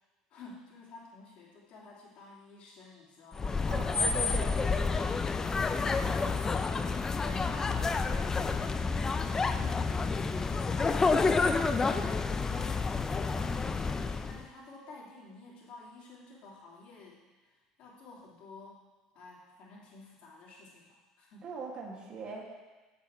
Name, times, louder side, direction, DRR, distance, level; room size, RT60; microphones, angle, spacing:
voice 1, 0.3-4.2 5.4-9.9 10.3-11.9 12.2-18.8 19.1-21.5, left 3 dB, 65° left, -5 dB, 2.6 m, -51 dB
sound 1, 3.3-14.4, left 4 dB, 25° left, 0.5 m, -29 dB
voice 2, 3.7-4.8 21.4-22.7, right 4 dB, 50° right, -1 dB, 1.7 m, -41 dB
7.1 x 6.4 x 4.4 m, 1.2 s
hypercardioid pair, 85°, 2 cm